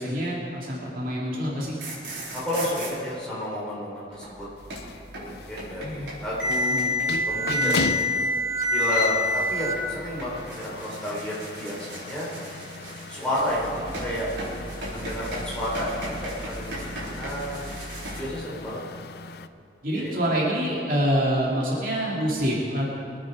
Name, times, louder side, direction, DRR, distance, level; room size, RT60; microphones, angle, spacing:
voice 1, 0.0-1.8 5.8-6.1 6.7-6.9 7.5-7.8 19.8-22.9, equal, 50° right, -5 dB, 2.6 m, -26 dB
sound 1, 1.6-2.9 4.1-18.2, left 1 dB, 75° right, 4.5 m, -30 dB
voice 2, 2.3-4.4 5.2-6.9 7.3-8.1 8.7-12.3 13.1-14.3 14.9-17.8 18.1-19.0 19.9-20.2, equal, 5° left, -8 dB, 4.5 m, -31 dB
sound 2, 4.6-19.5, left 4 dB, 60° left, 0.5 m, -38 dB
23.0 x 9.4 x 4.9 m, 2.5 s
head